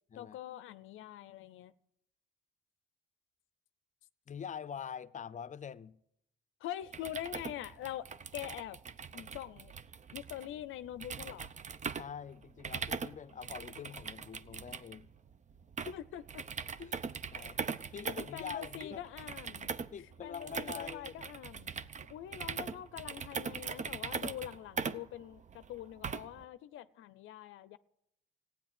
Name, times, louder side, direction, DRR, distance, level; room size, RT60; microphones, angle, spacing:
voice 1, 0.2-1.7 6.6-8.1 8.3-8.8 9.1-9.7 10.1-11.5 15.8-16.4 17.4-17.6 18.3-19.7 20.2-21.7 22.1-27.8, left 12 dB, 80° left, 0.6 m, -44 dB
voice 2, 4.3-6.0 12.0-15.1 16.8-17.0 17.3-17.6 17.9-19.0 19.9-21.3, left 7 dB, 40° left, 0.6 m, -45 dB
sound 1, 6.8-26.4, right 5 dB, 35° right, 0.7 m, -41 dB
15.5 x 9.4 x 9.2 m
cardioid pair, 90°, 20 cm